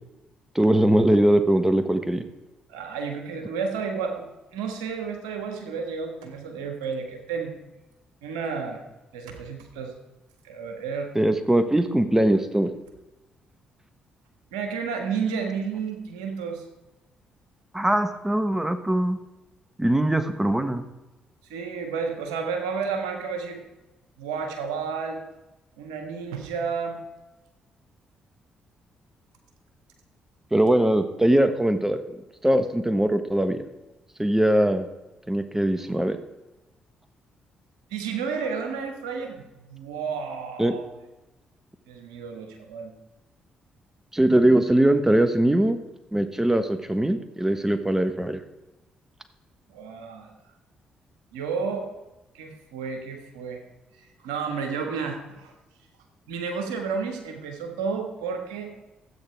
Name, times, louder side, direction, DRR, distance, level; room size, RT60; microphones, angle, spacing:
voice 1, 0.5-2.2 11.1-12.7 17.7-19.2 19.8-20.9 30.5-32.0 32.4-33.6 34.2-34.9 35.3-36.2 40.6-40.7 44.1-45.8 46.1-48.4, right 1 dB, 10° right, 9 dB, 1.2 m, -21 dB
voice 2, 2.7-7.5 8.2-8.8 9.1-9.9 10.4-11.1 14.5-16.6 21.5-23.6 24.2-25.2 25.8-27.0 37.9-40.8 41.9-42.9 49.7-50.3 51.3-51.9 52.3-53.6 54.0-55.5 56.3-58.7, right 5 dB, 85° right, 4 dB, 1.6 m, -31 dB
13.0 x 8.8 x 4.6 m, 1.0 s
hypercardioid pair, 45°, 3 cm